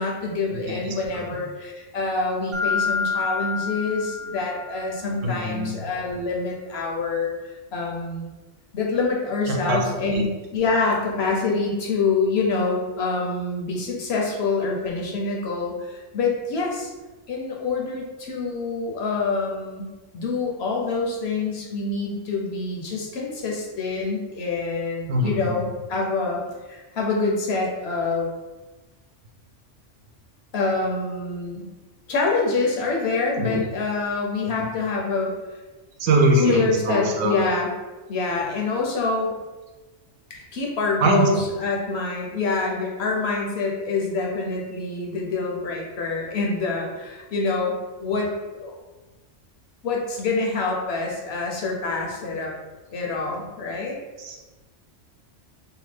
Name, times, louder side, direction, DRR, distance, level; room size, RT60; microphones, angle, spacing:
voice 1, 0.0-7.3 7.7-8.3 8.7-16.9 17.3-26.4 26.7-28.3 30.5-31.6 32.1-35.3 36.3-37.7 38.1-39.3 40.3-48.7 49.8-52.5 52.9-54.0, left 3 dB, 65° left, -1 dB, 0.8 m, -26 dB
voice 2, 0.5-1.0 5.2-5.8 9.5-9.8 10.1-10.2 25.1-25.7 33.4-33.7 34.6-34.7 36.0-37.4 41.0-41.4 54.2-54.4, right 1 dB, 80° right, 1 dB, 1.0 m, -23 dB
Mallet percussion, 2.5-5.1, left 5 dB, ahead, 0.3 m, -28 dB
2.8 x 2.2 x 3.1 m, 1.2 s
omnidirectional pair, 1.3 m